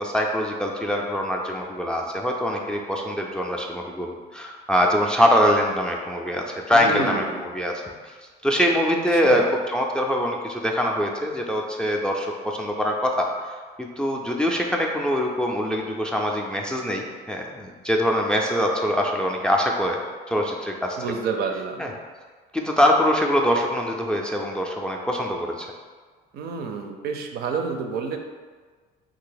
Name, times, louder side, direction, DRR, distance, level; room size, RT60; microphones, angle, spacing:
voice 1, 0.0-7.7 8.4-9.4 9.7-13.3 13.8-20.0 20.3-21.0 21.8-21.9 22.5-25.7, equal, 5° left, -1 dB, 0.3 m, -23 dB
voice 2, 6.7-7.4 9.2-9.5 21.0-21.9 26.3-28.2, right 5 dB, 70° right, 4 dB, 0.4 m, -29 dB
2.8 x 2.5 x 3.9 m, 1.5 s
cardioid pair, 110°, 17 cm